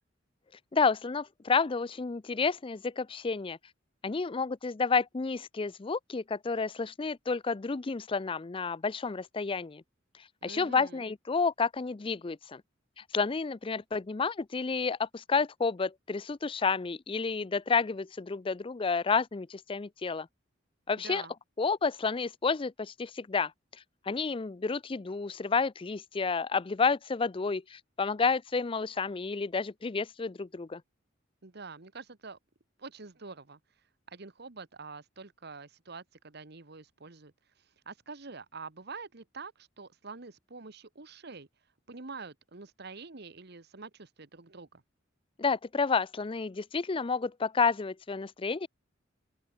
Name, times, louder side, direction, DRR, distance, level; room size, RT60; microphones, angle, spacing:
voice 1, 0.7-3.6 4.0-9.8 10.1-12.6 13.0-20.3 20.9-21.2 21.6-30.8 45.4-48.7, left 4 dB, 25° left, 0.5 m, -30 dB
voice 2, 10.4-11.1 21.0-21.3 31.4-32.4 32.8-33.6 34.1-41.5 41.9-44.8, right 4 dB, 55° right, 1.3 m, -46 dB
open air
head